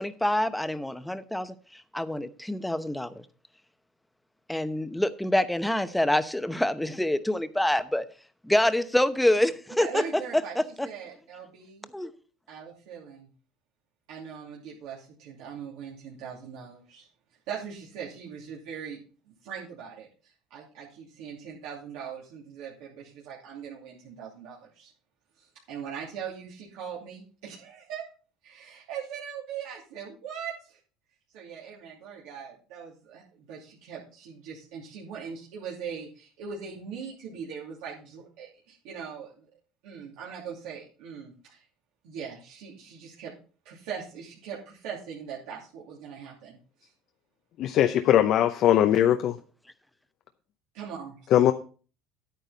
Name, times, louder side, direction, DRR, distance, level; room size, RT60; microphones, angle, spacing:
voice 1, 0.0-1.5 1.9-3.1 4.5-8.0 8.4-10.0 10.6-10.9 11.9-12.1, left 1 dB, 5° left, 0.9 m, -26 dB
voice 2, 9.8-10.6 10.8-11.9 12.5-13.3 14.1-17.1 17.5-24.9 25.4-28.1 28.4-30.8 31.3-39.5 39.8-41.6 42.0-43.3 43.6-46.9 50.7-51.2, right 7 dB, 80° right, 2.8 m, -41 dB
voice 3, 47.6-49.4 51.3-51.5, left 11 dB, 60° left, 0.7 m, -20 dB
9.9 x 9.3 x 4.1 m
supercardioid pair, 100°, 0 cm